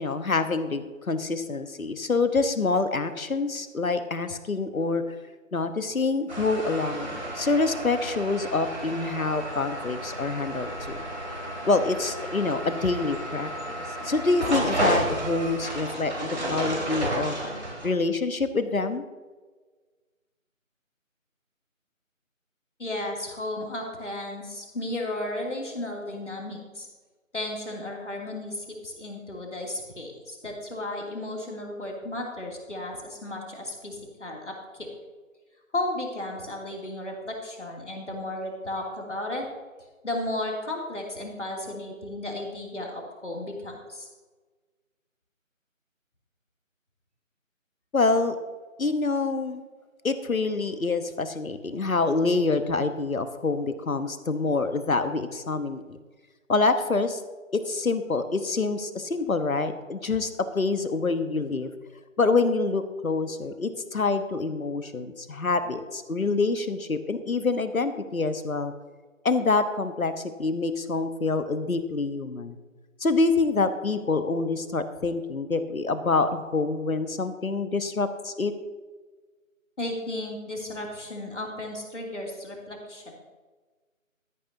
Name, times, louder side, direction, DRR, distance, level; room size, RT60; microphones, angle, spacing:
voice 1, 0.0-5.0 5.5-11.0 11.7-13.5 14.0-17.3 17.8-19.0 47.9-48.4 48.8-49.6 50.0-56.0 56.5-57.2 57.5-60.3 60.5-61.7 62.2-68.7 69.2-72.6 73.0-78.5, left 3 dB, 85° left, 10 dB, 1.2 m, -26 dB
sound 1, 6.3-17.9, right 1 dB, 55° right, 3.4 m, -32 dB
voice 2, 22.8-26.9 27.3-34.9 35.7-39.5 40.0-44.1 79.8-83.2, left 1 dB, 60° left, -1 dB, 2.8 m, -34 dB
13.0 x 11.5 x 2.7 m, 1.3 s
figure-of-eight pair, 175°, 41 cm